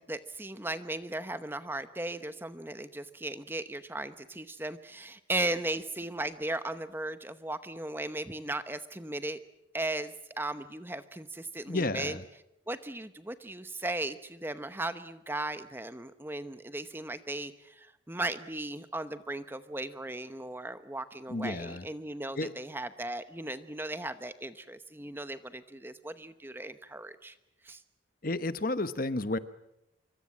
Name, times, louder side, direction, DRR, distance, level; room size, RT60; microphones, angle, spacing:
voice 1, 0.0-9.4 9.7-12.2 12.7-27.3 27.6-27.8, right 2 dB, 10° right, 11 dB, 0.9 m, -37 dB
voice 2, 11.7-12.2 21.3-21.8 22.4-22.5 28.2-29.4, left 2 dB, 45° left, 12 dB, 1.0 m, -31 dB
26.0 x 23.5 x 7.4 m, 0.85 s
head